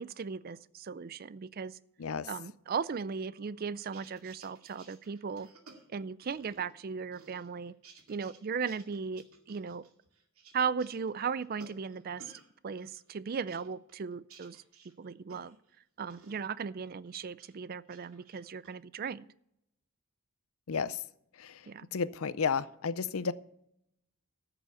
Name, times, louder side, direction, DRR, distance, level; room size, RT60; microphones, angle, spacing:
voice 1, 0.0-1.8 2.3-5.5 5.9-7.7 8.1-9.8 10.5-12.2 12.6-14.6 15.0-15.6 16.0-19.3 21.7-21.9, right 6 dB, 45° right, 18 dB, 0.4 m, -37 dB
sound 1, 3.8-6.8 7.1-8.4 8.7-12.5 12.8-15.8 16.1-16.4 16.9-17.5 17.8-18.7, right 4 dB, 85° right, 2.3 m, -57 dB
voice 2, 20.7-21.0 21.4-21.5 21.9-23.3, left 5 dB, 75° left, 16 dB, 0.6 m, -32 dB
13.5 x 6.9 x 7.0 m, 0.78 s
head